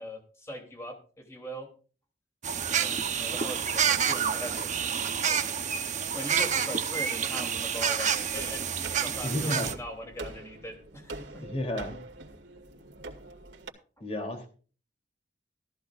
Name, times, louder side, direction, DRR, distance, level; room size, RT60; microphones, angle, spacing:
voice 1, 0.0-1.7 2.7-4.9 5.2-5.4 6.1-11.4 14.0-14.1, equal, 15° left, 3 dB, 3.2 m, -41 dB
sound 1, 2.4-9.7, right 7 dB, 45° right, 0.9 m, -28 dB
sound 2, 8.3-13.7, right 2 dB, 85° right, 2.3 m, -44 dB
voice 2, 9.2-9.7 11.4-12.0 14.0-14.5, left 1 dB, 35° left, 4 dB, 3.2 m, -32 dB
15.5 x 14.0 x 2.5 m, 0.39 s
head